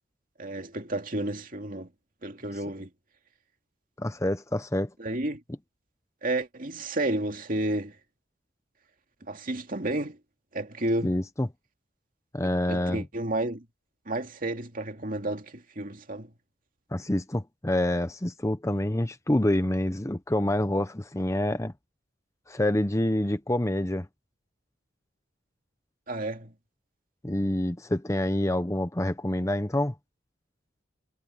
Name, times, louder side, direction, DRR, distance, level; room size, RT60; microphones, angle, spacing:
voice 1, 0.4-1.9 2.2-2.9 5.0-5.4 6.2-8.0 9.3-10.2 10.5-11.2 12.4-13.7 14.1-16.3 26.1-26.5, right 1 dB, 45° right, 2.5 m, -31 dB
voice 2, 4.0-4.9 11.0-11.5 12.3-13.0 16.9-21.7 22.5-24.1 27.2-29.9, left 1 dB, 15° left, 0.7 m, -27 dB
head